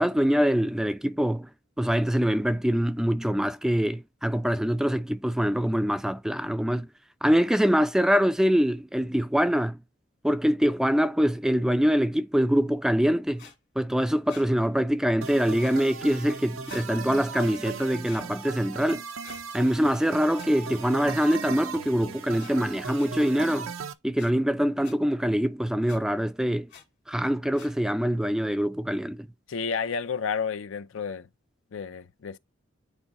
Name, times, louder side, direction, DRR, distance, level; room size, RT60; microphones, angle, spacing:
voice 1, 0.0-1.5 1.8-6.9 7.2-9.8 10.2-13.5 13.8-19.0 19.5-23.7 24.0-26.7 27.1-29.3, equal, 5° right, 0.3 m, -24 dB
sound 1, 13.4-13.5 14.2-14.5 15.5-15.8 16.6-16.9 18.0-18.3 19.2-19.4 20.4-20.5 21.3-21.4 22.4-22.5 23.0-23.1 24.1-24.3 24.8-24.9 25.9-26.0 26.7-26.8 27.5-27.7, left 6 dB, 60° left, 2.0 m, -47 dB
sound 2, 15.2-23.9, right 6 dB, 90° right, 0.7 m, -38 dB
voice 2, 29.5-31.3 31.7-32.4, left 6 dB, 80° left, 0.5 m, -31 dB
10.0 x 3.9 x 2.9 m
head